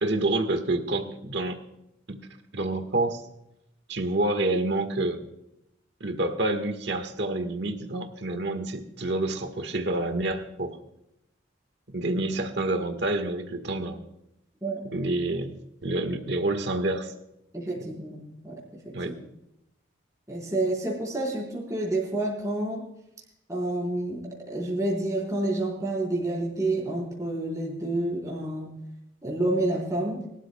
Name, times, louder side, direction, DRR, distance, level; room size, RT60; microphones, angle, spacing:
voice 1, 0.0-1.6 2.1-2.2 2.5-3.2 3.9-5.2 6.0-10.8 11.9-14.0 14.9-15.5 15.8-17.1 17.9-18.0 18.9-19.1, right 2 dB, 60° right, 7 dB, 1.4 m, -28 dB
voice 2, 17.5-18.9 20.3-22.8 23.5-28.7 29.2-30.2, right 2 dB, 15° right, -3 dB, 4.3 m, -29 dB
24.0 x 13.0 x 2.2 m, 0.85 s
head